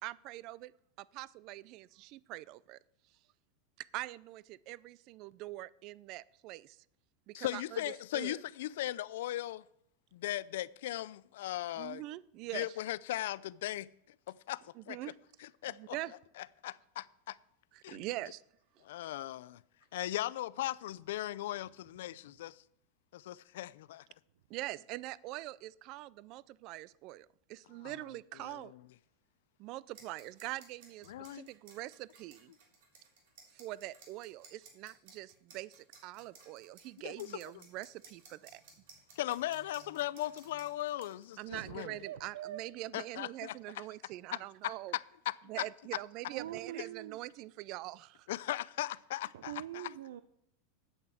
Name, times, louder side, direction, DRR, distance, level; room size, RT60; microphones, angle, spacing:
voice 1, 0.0-0.7 1.0-2.8 3.8-6.8 7.3-7.8 8.1-8.4 11.8-12.7 14.8-15.1 15.7-16.1 17.7-18.4 24.5-28.7 29.6-32.5 33.5-38.6 41.4-45.0 45.5-48.3, right 17 dB, 40° right, 0.3 m, -44 dB
voice 2, 7.3-9.6 10.1-12.0 12.5-13.9 14.3-14.6 14.9-15.1 15.4-16.0 16.4-17.4 17.8-18.0 18.8-19.6 19.9-22.6 23.1-24.0 27.8-27.9 28.4-28.8 31.1-31.5 37.0-37.3 39.2-42.0 42.9-43.5 44.3-45.7 45.9-46.0 48.3-49.9, left 14 dB, 70° left, 0.4 m, -38 dB
sound 1, 29.9-41.4, right 5 dB, 65° right, 3.2 m, -58 dB
voice 3, 41.5-42.6 46.3-47.2 49.3-50.2, right 12 dB, 85° right, 0.6 m, -44 dB
8.9 x 8.0 x 7.6 m
supercardioid pair, 160°, 0 cm